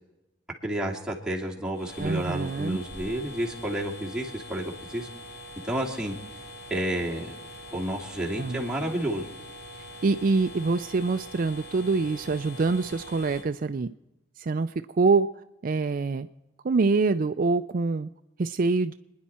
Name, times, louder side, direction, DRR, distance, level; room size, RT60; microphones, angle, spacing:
voice 1, 0.6-5.1 5.6-6.1 6.7-7.4 7.7-9.3, right 1 dB, 5° right, -3 dB, 2.4 m, -30 dB
sound 1, 1.7-13.4, equal, 65° left, 2.6 m, -43 dB
voice 2, 2.0-2.8 8.4-8.6 10.0-13.9 14.4-15.3 15.6-16.3 16.6-18.1 18.4-18.9, right 4 dB, 50° right, 10 dB, 0.4 m, -25 dB
27.5 x 10.5 x 4.3 m, 0.95 s
head